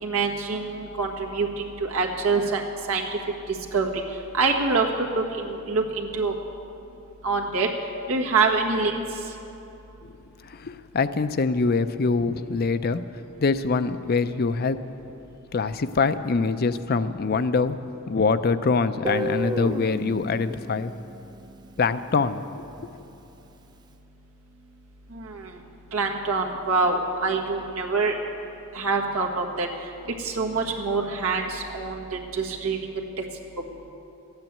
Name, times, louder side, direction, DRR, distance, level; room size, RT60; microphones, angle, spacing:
voice 1, 0.0-2.6 2.9-3.0 3.7-3.9 4.3-4.8 5.1-6.3 7.2-7.7 8.1-9.0 25.1-25.5 25.9-28.1 28.7-29.7 30.2-33.0, right 4 dB, 85° right, 0 dB, 1.6 m, -25 dB
voice 2, 10.4-13.0 13.4-14.8 15.5-17.8 18.1-20.9 21.8-22.4 22.8-22.9, left 4 dB, 45° left, 11 dB, 0.5 m, -24 dB
Guitar, 19.0-22.0, equal, 20° right, 0.4 m, -32 dB
13.0 x 9.0 x 9.3 m, 2.9 s
head